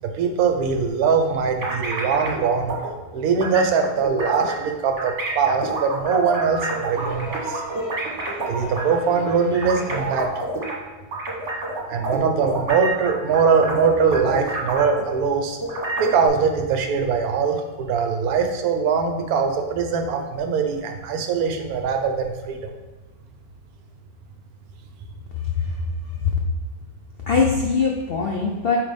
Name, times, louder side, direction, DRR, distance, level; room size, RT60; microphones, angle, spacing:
voice 1, 0.0-2.8 3.1-7.6 8.5-10.3 11.9-15.6 16.0-22.6, right 5 dB, 65° right, 5 dB, 1.1 m, -22 dB
sound 1, 1.6-2.4 2.7-2.9 3.4-4.7 5.0-10.7 11.1-15.3 15.6-16.3, right 2 dB, 45° right, 1.4 m, -28 dB
sound 2, 6.9-10.4 11.7-11.8, right 1 dB, 10° left, 1.2 m, -37 dB
voice 2, 27.3-28.8, left 5 dB, 70° left, -1 dB, 0.5 m, -21 dB
9.0 x 3.2 x 3.5 m, 1.2 s
omnidirectional pair, 1.9 m